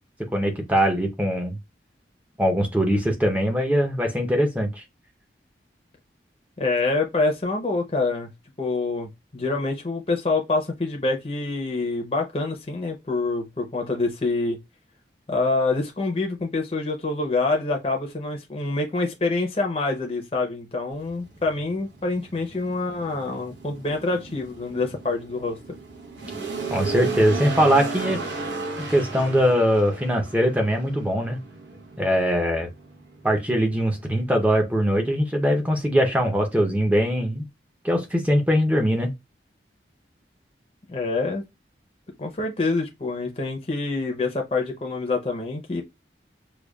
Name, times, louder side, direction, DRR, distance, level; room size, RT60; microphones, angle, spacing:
voice 1, 0.3-1.6 2.4-4.8 26.7-28.2 28.9-31.4 32.0-32.7 33.2-37.5 37.8-39.1, equal, 10° right, 0.6 m, -21 dB
voice 2, 6.6-8.3 8.6-14.6 15.3-25.8 40.9-41.4 42.2-45.8, left 3 dB, 30° left, 0.6 m, -26 dB
sound 1, 20.9-35.4, right 3 dB, 85° right, 0.9 m, -35 dB
4.9 x 2.3 x 2.3 m
head